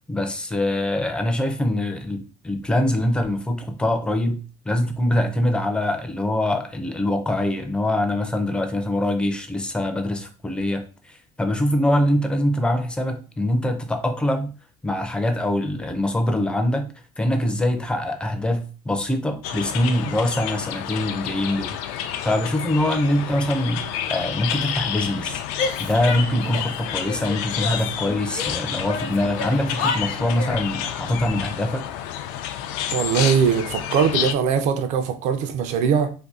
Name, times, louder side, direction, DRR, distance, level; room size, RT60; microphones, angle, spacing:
voice 1, 0.1-14.5 14.8-16.9 17.2-23.8 24.1-25.4 25.8-31.9, left 1 dB, 5° left, 0.4 m, -24 dB
sound 1, 19.4-34.3, left 10 dB, 75° left, 0.4 m, -30 dB
Female speech woman speaking / Yell, 25.6-26.8 27.0-28.5 28.8-30.7, left 4 dB, 60° left, 0.8 m, -30 dB
voice 2, 32.9-36.1, right 7 dB, 55° right, 0.6 m, -21 dB
2.7 x 2.6 x 3.6 m
cardioid pair, 150°, 15 cm